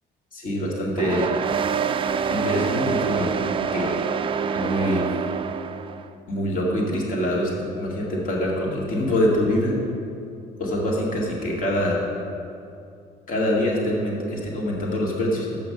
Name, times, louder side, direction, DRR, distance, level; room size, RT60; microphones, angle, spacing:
voice 1, 0.3-1.3 2.3-3.3 3.7-4.0 4.5-5.1 6.3-9.8 10.6-12.0 13.3-15.6, left 1 dB, 50° left, -3 dB, 2.1 m, -24 dB
sound 1, 1.0-6.1, right 7 dB, 30° right, 0.4 m, -26 dB
7.2 x 5.8 x 7.5 m, 2.5 s
cardioid pair, 110°, 17 cm